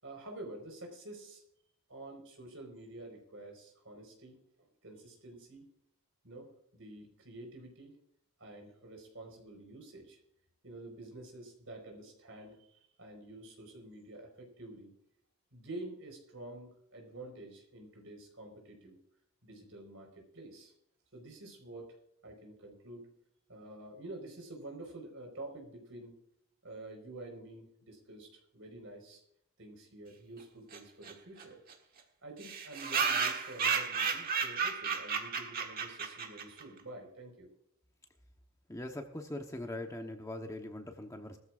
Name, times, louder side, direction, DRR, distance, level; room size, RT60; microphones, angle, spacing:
voice 1, 0.0-1.4 1.9-5.6 6.2-7.9 8.4-10.2 10.6-14.9 15.5-19.0 19.4-20.7 21.1-22.0 22.2-23.1 23.5-26.1 26.6-29.2 29.6-37.5, right 2 dB, 60° right, 3 dB, 4.8 m, -49 dB
sound 1, 30.7-30.8 31.0-31.1 31.4-31.5 31.7-31.8 32.4-36.6, right 6 dB, 40° right, 1.5 m, -33 dB
voice 2, 38.7-41.4, left 1 dB, 15° left, 4 dB, 1.0 m, -41 dB
19.5 x 14.0 x 2.5 m, 0.74 s
head